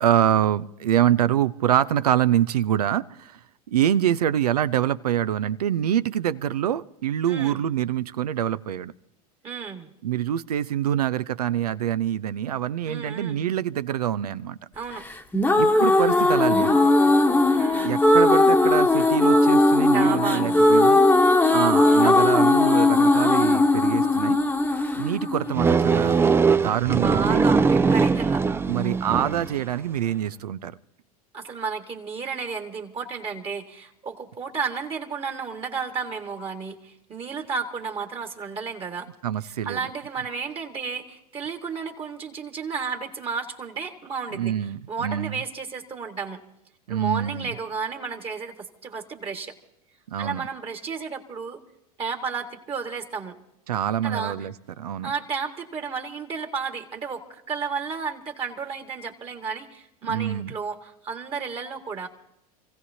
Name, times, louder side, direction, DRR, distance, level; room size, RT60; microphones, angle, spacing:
voice 1, 0.0-3.4 3.7-8.9 10.0-14.6 15.6-16.8 17.8-21.0 21.5-24.4 25.0-26.3 26.5-27.4 28.7-30.7 39.2-39.8 44.3-45.4 46.9-47.5 50.1-50.5 53.7-55.1 60.0-60.5, right 10 dB, 85° right, 16 dB, 0.6 m, -25 dB
voice 2, 7.3-7.6 9.4-9.9 12.9-13.4 14.7-15.0 17.5-18.0 19.9-20.7 21.8-22.1 26.9-28.4 31.3-39.1 39.4-46.4 46.9-49.5 50.2-51.6 52.0-53.4 54.0-54.5 55.0-62.1, right 5 dB, 30° right, 4 dB, 1.7 m, -32 dB
sound 1, 15.1-26.1, left 2 dB, 10° left, 1.1 m, -18 dB
sound 2, 25.5-29.6, right 5 dB, 10° right, 0.4 m, -21 dB
28.5 x 16.0 x 2.8 m, 0.83 s
hypercardioid pair, 90°, 19 cm